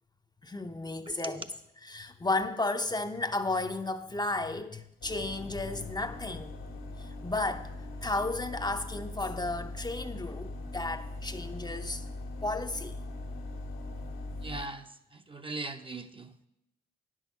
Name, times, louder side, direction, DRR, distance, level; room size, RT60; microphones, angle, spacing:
voice 1, 0.4-1.5 1.8-6.5 7.0-12.0 12.4-13.0, left 2 dB, 20° left, 0.7 m, -33 dB
voice 2, 1.1-1.5 14.4-16.3, right 2 dB, 25° right, 0.7 m, -40 dB
sound 1, 5.0-14.6, left 2 dB, 85° left, 1.6 m, -41 dB
9.9 x 6.3 x 5.6 m
supercardioid pair, 45°, 21 cm